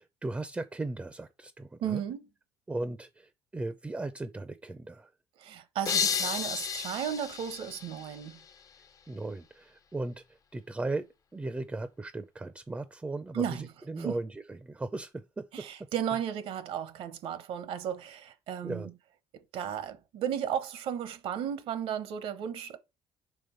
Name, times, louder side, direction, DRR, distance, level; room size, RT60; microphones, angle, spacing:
voice 1, 0.0-2.0 2.7-5.1 9.1-10.2 10.5-15.7 18.6-18.9, right 2 dB, 15° right, 0.5 m, -37 dB
voice 2, 1.8-2.3 5.4-8.4 13.3-13.7 14.0-14.2 15.5-18.9 19.3-22.8, right 9 dB, 70° right, 0.9 m, -34 dB
sound 1, 5.9-8.6, left 7 dB, 35° left, 0.5 m, -32 dB
5.2 x 3.4 x 5.5 m
cardioid pair, 115°, 10 cm